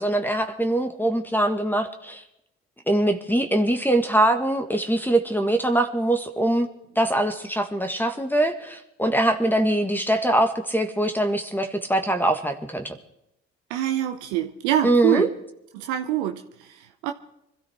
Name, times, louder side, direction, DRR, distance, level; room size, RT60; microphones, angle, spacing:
voice 1, 0.0-2.2 2.9-6.7 7.0-13.0 14.8-15.3, right 1 dB, 5° left, 1.7 m, -23 dB
voice 2, 13.7-15.3 15.7-17.1, right 12 dB, 80° right, 0.9 m, -25 dB
25.0 x 13.5 x 3.7 m
hypercardioid pair, 50°, 32 cm